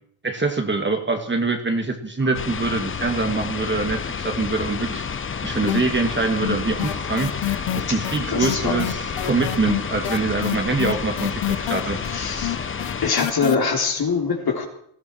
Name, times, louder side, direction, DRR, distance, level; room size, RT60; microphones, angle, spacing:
voice 1, 0.2-5.1 5.4-9.0 9.2-12.0, right 3 dB, 25° right, 4 dB, 2.3 m, -24 dB
sound 1, 2.2-13.6, right 1 dB, 40° right, 2.7 m, -39 dB
sound 2, 2.3-13.1, left 7 dB, 25° left, 0.5 m, -30 dB
sound 3, 5.7-6.2 6.4-13.5, left 15 dB, 65° left, 1.0 m, -27 dB
voice 2, 8.3-8.8 11.2-12.6 13.0-14.7, left 5 dB, 50° left, 2 dB, 3.5 m, -24 dB
18.5 x 14.0 x 4.6 m, 0.67 s
cardioid pair, 90°, 48 cm